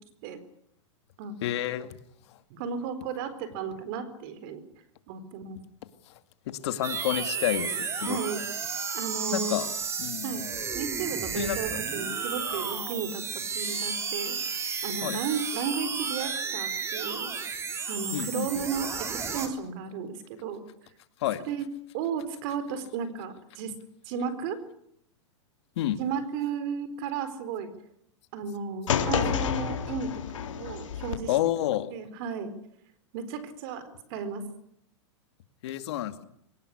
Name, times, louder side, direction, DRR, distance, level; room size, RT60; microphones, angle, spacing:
voice 1, 1.4-2.0 2.3-2.4 6.1-6.2 6.5-8.2 9.3-9.7 10.0-10.4 11.3-12.1 15.0-15.2 18.1-18.7 21.2-21.4 25.8-26.0 31.3-31.9 35.6-36.2, left 13 dB, 60° left, 10 dB, 2.3 m, -30 dB
voice 2, 2.5-4.6 5.1-5.6 8.0-8.4 8.9-9.5 10.2-10.5 10.7-14.4 14.8-17.3 17.9-20.6 21.5-21.6 21.9-23.7 24.1-24.6 26.0-27.7 28.3-31.3 31.9-32.5 33.1-33.8 34.1-34.4, right 6 dB, 45° right, 12 dB, 4.2 m, -34 dB
sound 1, 6.8-19.5, right 5 dB, 15° right, 3.3 m, -33 dB
sound 2, 28.9-31.2, left 8 dB, 85° left, 3.7 m, -29 dB
22.5 x 19.0 x 10.0 m, 0.72 s
supercardioid pair, 150°, 16 cm